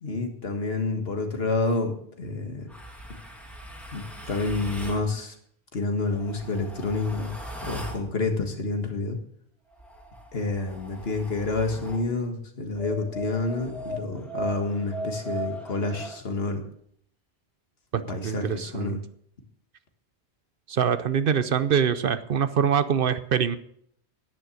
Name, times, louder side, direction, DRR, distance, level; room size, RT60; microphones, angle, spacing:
voice 1, 0.0-1.9 2.2-2.7 3.9-4.0 4.3-5.4 5.7-7.3 7.7-9.2 10.3-16.6 18.1-19.0, left 3 dB, 65° left, 5 dB, 1.9 m, -28 dB
sound 1, 2.7-5.1 6.0-8.1 9.7-12.1 12.7-16.2, right 1 dB, ahead, 2.0 m, -38 dB
voice 2, 17.9-19.0 20.7-23.6, right 7 dB, 60° right, 13 dB, 0.8 m, -24 dB
10.5 x 9.8 x 6.3 m, 0.65 s
omnidirectional pair, 1.1 m